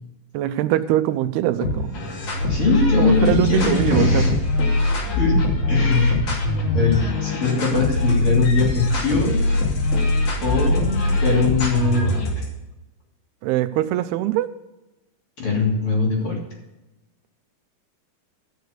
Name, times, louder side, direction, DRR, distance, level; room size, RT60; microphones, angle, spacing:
voice 1, 0.3-2.1 3.0-4.4 13.4-14.5, right 13 dB, 90° right, 13 dB, 2.6 m, -23 dB
sound 1, 1.6-12.4, left 2 dB, 50° left, 3.8 m, -22 dB
voice 2, 2.5-4.3 5.2-5.4 5.7-6.2 6.7-9.4 10.4-12.4 15.4-16.4, left 3 dB, 35° left, -3 dB, 3.5 m, -21 dB
13.0 x 6.6 x 6.6 m, 0.98 s
omnidirectional pair, 4.5 m